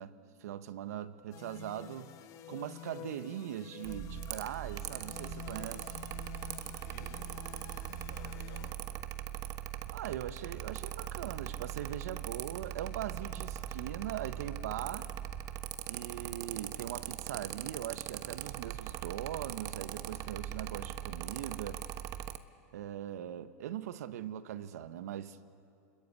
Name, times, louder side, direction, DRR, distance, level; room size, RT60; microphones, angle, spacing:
voice 1, 0.0-2.2 2.5-6.0 9.9-15.1 15.9-21.8 22.7-25.4, right 11 dB, 75° right, 1.3 m, -41 dB
sound 1, 1.3-8.7, left 14 dB, 40° left, 1.7 m, -49 dB
Mechanical fan, 3.8-22.4, right 12 dB, 40° right, 1.1 m, -41 dB
voice 2, 6.6-8.7, left 5 dB, 75° left, 6.8 m, -56 dB
28.5 x 22.0 x 8.8 m
hypercardioid pair, 120°, 9 cm